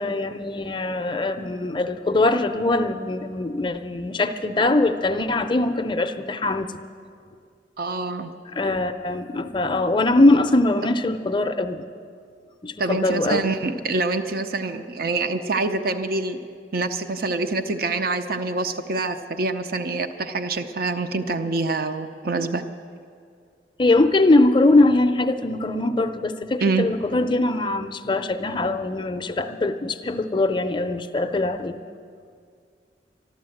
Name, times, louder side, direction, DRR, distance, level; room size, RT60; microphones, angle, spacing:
voice 1, 0.0-6.8 8.5-11.8 12.6-13.5 23.8-31.8, left 2 dB, 25° left, 8 dB, 0.5 m, -22 dB
voice 2, 7.8-8.3 12.8-16.4 16.7-22.6 26.6-26.9, right 3 dB, 55° right, 8 dB, 0.6 m, -25 dB
12.5 x 12.5 x 7.7 m, 2.2 s
head